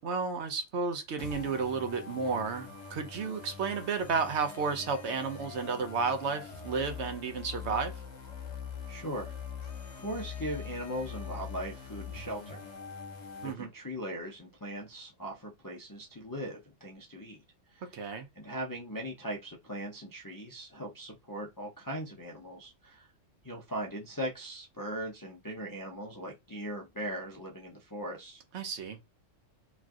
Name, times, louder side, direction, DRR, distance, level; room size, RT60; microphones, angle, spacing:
voice 1, 0.0-8.0 13.4-13.7 17.9-18.3 28.5-29.0, right 5 dB, 65° right, 0.9 m, -32 dB
sound 1, 1.2-13.5, left 6 dB, 65° left, 1.1 m, -43 dB
voice 2, 8.9-9.3 9.9-12.6 13.4-17.4 17.7-17.8 18.4-23.1 23.4-28.4, equal, 30° left, 0.3 m, -39 dB
3.1 x 2.4 x 2.5 m
omnidirectional pair, 1.3 m